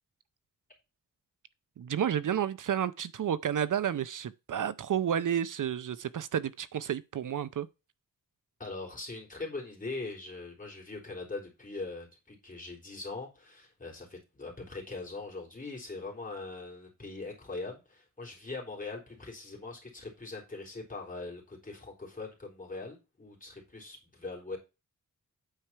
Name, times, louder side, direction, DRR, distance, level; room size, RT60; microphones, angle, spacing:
voice 1, 1.8-7.7, right 9 dB, 70° right, 0.6 m, -31 dB
voice 2, 8.6-24.6, left 3 dB, 25° left, 3.8 m, -41 dB
9.1 x 4.8 x 5.6 m
wide cardioid pair, 150°, 32 cm